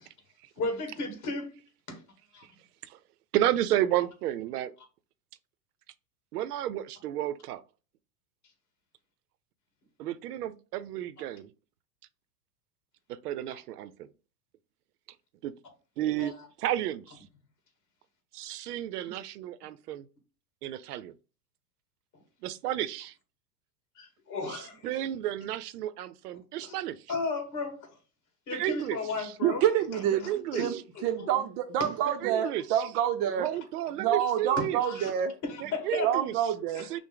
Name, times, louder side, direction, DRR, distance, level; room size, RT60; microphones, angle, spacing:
voice 1, 0.6-1.6 16.2-16.5 19.1-19.2 24.0-25.0 26.6-26.8 27.1-28.0 28.5-29.6 30.2-31.4 31.8-31.9 34.6-35.1 35.5-36.1 36.7-37.0, left 3 dB, 35° left, 2.0 m, -35 dB
voice 2, 3.3-4.7 6.3-7.6 10.0-11.5 13.1-14.1 15.4-15.5 16.0-17.2 18.3-20.1 20.6-21.1 22.4-23.1 24.5-27.0 28.5-29.3 30.3-30.8 32.1-32.6 33.4-34.8 35.6-36.3 36.9-37.0, right 12 dB, 80° right, 0.6 m, -32 dB
voice 3, 29.4-30.3 30.6-33.5 34.0-35.3 36.0-36.9, right 10 dB, 30° right, 0.4 m, -27 dB
5.9 x 2.1 x 3.8 m
hypercardioid pair, 125°, 46 cm